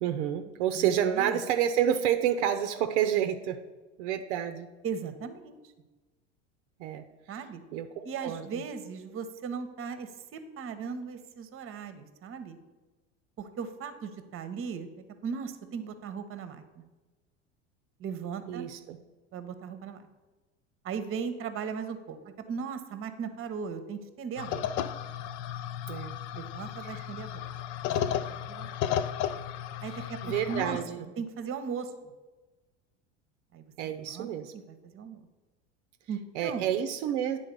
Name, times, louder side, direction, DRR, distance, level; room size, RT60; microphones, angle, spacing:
voice 1, 0.0-3.6 4.0-4.7 6.8-7.1 7.7-8.6 18.5-19.0 25.9-26.1 26.9-27.1 30.2-31.0 33.8-34.5 36.3-37.4, right 10 dB, 70° right, 7 dB, 0.6 m, -29 dB
voice 2, 0.7-1.4 4.8-5.6 7.3-7.6 8.0-12.6 13.4-14.9 15.2-16.8 18.0-18.7 19.3-20.0 20.8-24.6 26.3-27.5 27.8-28.7 29.8-30.8 31.2-31.9 33.5-35.2 36.1-36.7, right 6 dB, 35° right, 10 dB, 0.9 m, -38 dB
sound 1, 24.4-30.8, left 9 dB, 55° left, 0.5 m, -34 dB
9.1 x 3.8 x 5.2 m, 1.2 s
hypercardioid pair, 85°, 36 cm